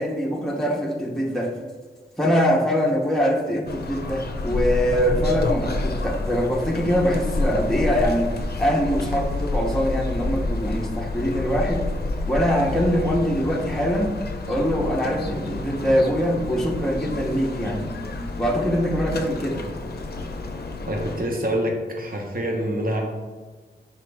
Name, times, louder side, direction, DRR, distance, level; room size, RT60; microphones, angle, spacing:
voice 1, 0.0-1.6 2.2-8.3 8.6-11.9 12.3-14.2 14.5-17.8 18.4-19.7, equal, ahead, -1 dB, 0.7 m, -23 dB
sound 1, 3.7-21.2, left 2 dB, 60° left, 0.5 m, -29 dB
voice 2, 20.9-23.0, equal, 55° right, 0 dB, 1.0 m, -26 dB
5.0 x 2.9 x 3.3 m, 1.4 s
cardioid pair, 55°, 18 cm